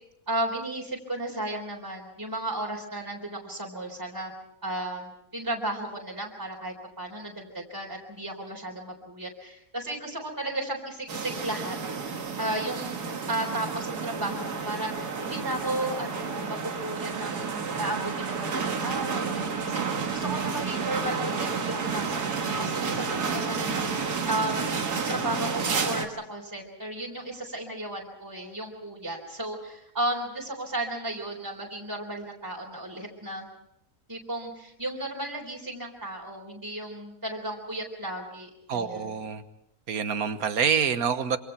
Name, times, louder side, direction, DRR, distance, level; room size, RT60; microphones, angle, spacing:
voice 1, 0.3-4.3 4.6-11.8 12.4-13.0 13.3-23.9 24.3-33.5 34.1-39.1, right 1 dB, 10° right, -2 dB, 3.9 m, -34 dB
sound 1, 11.1-26.1, right 5 dB, 90° right, 2.3 m, -30 dB
voice 2, 38.7-39.4 39.9-41.4, right 6 dB, 70° right, 11 dB, 1.7 m, -26 dB
26.5 x 26.0 x 4.5 m, 0.78 s
omnidirectional pair, 1.6 m